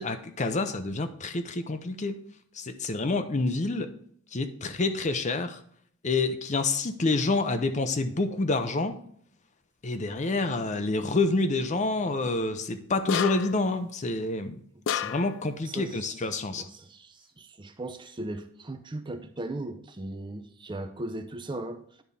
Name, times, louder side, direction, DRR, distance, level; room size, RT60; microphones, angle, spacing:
voice 1, 0.0-2.2 2.6-3.9 4.3-5.6 6.0-9.0 9.8-14.6 14.9-16.7, left 3 dB, 35° left, 9 dB, 0.7 m, -28 dB
sound 1, 13.1-13.7 14.9-15.4, left 9 dB, 65° left, 0.3 m, -30 dB
voice 2, 15.7-16.2 16.5-21.8, right 2 dB, 25° right, 8 dB, 0.5 m, -38 dB
10.0 x 3.6 x 5.4 m, 0.63 s
head